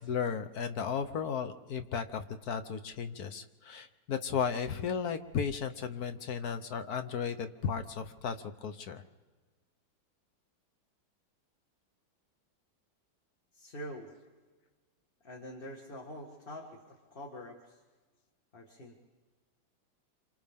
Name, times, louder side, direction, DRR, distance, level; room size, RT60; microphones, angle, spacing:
voice 1, 0.0-8.4 8.6-9.0, left 6 dB, 55° left, 9 dB, 1.2 m, -35 dB
voice 2, 13.5-14.1 15.2-17.8 18.5-19.0, equal, 30° left, 0 dB, 1.8 m, -45 dB
27.5 x 26.5 x 3.6 m, 1.4 s
omnidirectional pair, 2.2 m